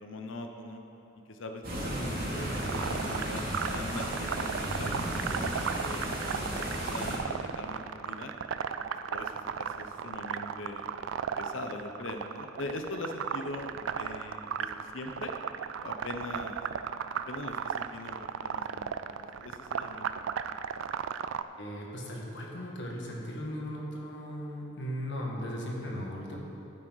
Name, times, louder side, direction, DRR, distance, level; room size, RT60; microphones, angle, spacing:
voice 1, 0.0-0.8 1.3-6.1 6.6-8.3 9.1-10.9 11.4-15.3 15.8-16.6 17.3-18.2 18.4-20.3, left 2 dB, 80° left, 4 dB, 0.8 m, -42 dB
sound 1, 1.6-7.2, right 1 dB, 50° right, 2.6 m, -34 dB
sound 2, 2.5-21.4, right 7 dB, 80° right, 0.3 m, -35 dB
voice 2, 21.6-26.4, equal, 65° left, -1 dB, 1.7 m, -37 dB
11.5 x 9.3 x 4.0 m, 2.9 s
head